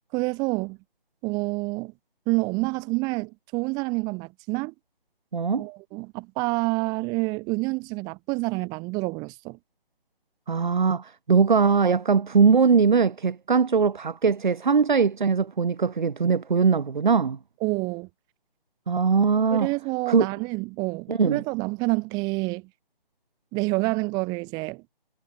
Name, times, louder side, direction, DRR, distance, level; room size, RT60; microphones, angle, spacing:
voice 1, 0.1-0.8 1.2-1.9 2.3-4.7 5.6-9.6 17.6-18.1 19.5-22.7 23.5-24.8, right 27 dB, 15° right, 4.6 m, -28 dB
voice 2, 5.3-5.7 10.5-17.4 18.9-19.7 20.1-20.3 21.1-21.4, right 5 dB, 55° right, 7.3 m, -21 dB
hypercardioid pair, 165°, 29 cm